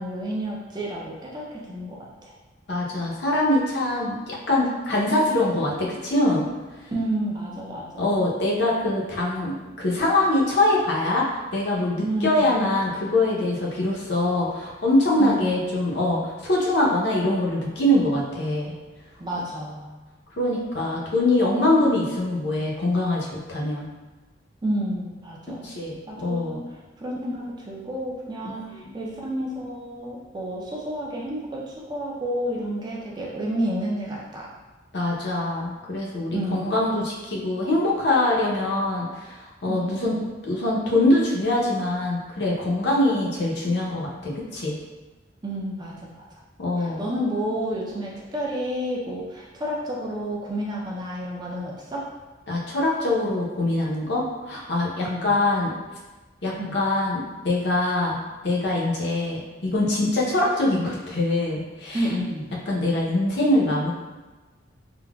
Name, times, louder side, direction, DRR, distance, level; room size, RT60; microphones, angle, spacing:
voice 1, 0.0-2.3 6.9-8.3 12.0-12.7 15.2-15.7 19.2-19.9 24.6-25.7 26.1-26.6 27.0-34.5 36.3-36.9 39.7-40.3 45.4-46.2 46.8-52.1 55.1-55.4 56.6-56.8 61.9-62.5, right 1 dB, 20° right, -4 dB, 0.4 m, -30 dB
voice 2, 2.7-6.4 8.0-11.3 11.5-18.7 20.4-23.9 25.6-26.6 28.4-28.5 34.9-40.1 40.4-44.7 46.6-47.1 52.5-55.7 56.4-58.2 58.4-62.0 62.7-63.9, left 1 dB, 60° left, -4 dB, 0.6 m, -23 dB
3.8 x 2.1 x 2.2 m, 1.2 s
head